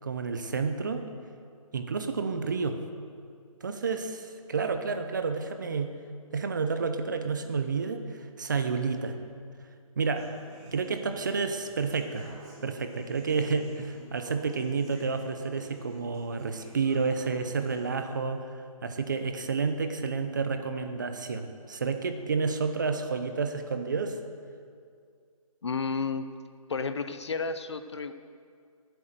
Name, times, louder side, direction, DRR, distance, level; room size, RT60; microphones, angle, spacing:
voice 1, 0.0-1.1 1.7-2.8 3.6-5.9 6.3-9.2 10.0-10.3 10.7-12.3 12.6-24.2, right 4 dB, 30° right, 8 dB, 0.7 m, -30 dB
Human voice / Acoustic guitar, 10.1-18.1, right 1 dB, 15° right, 3.1 m, -50 dB
voice 2, 25.6-26.3 26.7-28.1, left 4 dB, 50° left, 11 dB, 0.7 m, -31 dB
11.5 x 7.9 x 7.9 m, 2.2 s
hypercardioid pair, 165°, 19 cm